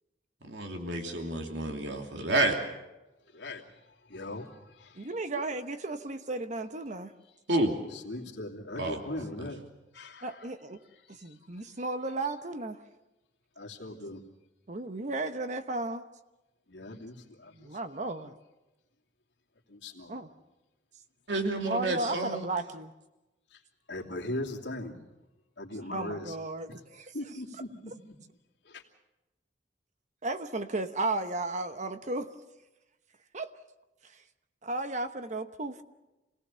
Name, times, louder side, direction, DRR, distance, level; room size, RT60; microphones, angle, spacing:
voice 1, 0.4-2.6 7.5-7.7 8.8-9.5 21.3-22.5, right 2 dB, 80° right, 3 dB, 2.9 m, -30 dB
voice 2, 3.3-3.7 4.1-5.5 5.8-5.9 7.9-9.6 9.9-10.5 10.9-11.3 13.6-14.2 16.7-17.8 19.7-20.2 23.9-24.9 25.6-26.4 27.1-28.1 28.6-28.8, left 1 dB, 80° left, -1 dB, 2.7 m, -40 dB
voice 3, 5.0-7.1 10.2-10.8 11.1-12.8 14.7-16.0 17.5-18.3 20.1-20.3 21.6-22.9 25.9-27.1 30.2-32.3 33.3-33.5 34.6-35.8, right 2 dB, 40° right, 9 dB, 1.0 m, -34 dB
27.5 x 18.0 x 6.9 m, 1.0 s
head